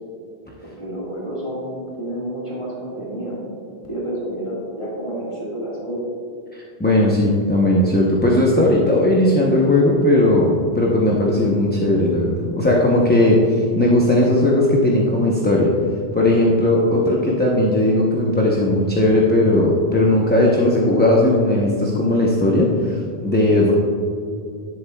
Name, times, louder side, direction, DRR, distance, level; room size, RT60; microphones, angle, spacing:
voice 1, 0.6-3.4 3.8-6.0, right 1 dB, 30° left, -6 dB, 1.9 m, -29 dB
voice 2, 6.8-15.7 16.1-23.7, left 1 dB, 10° left, -3 dB, 0.7 m, -17 dB
11.0 x 7.6 x 2.3 m, 2.4 s
omnidirectional pair, 1.0 m